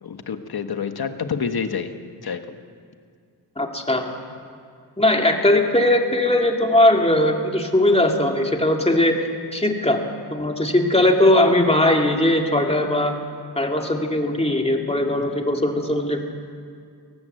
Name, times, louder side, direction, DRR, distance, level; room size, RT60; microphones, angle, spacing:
voice 1, 0.0-2.6 15.1-15.3, left 6 dB, 65° left, 8 dB, 1.5 m, -28 dB
voice 2, 3.6-4.1 5.0-9.2 9.5-10.0 10.3-13.2 13.6-16.2, left 1 dB, 15° left, 2 dB, 2.4 m, -19 dB
23.5 x 18.0 x 7.8 m, 2.2 s
wide cardioid pair, 110°, 41 cm